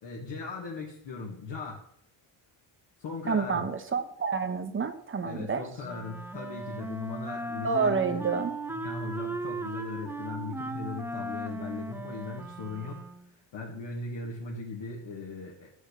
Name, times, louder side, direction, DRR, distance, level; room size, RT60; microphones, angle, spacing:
voice 1, 0.0-1.8 3.0-3.6 5.2-8.2 8.7-13.0 13.3-15.7, left 3 dB, 65° left, -2 dB, 2.2 m, -38 dB
voice 2, 3.3-5.7 7.6-8.5, right 5 dB, 25° right, 8 dB, 1.2 m, -28 dB
Wind instrument woodwind instrument, 5.8-13.4, right 2 dB, 5° right, 0.6 m, -37 dB
12.0 x 6.2 x 8.4 m, 0.69 s
cardioid pair, 165°, 46 cm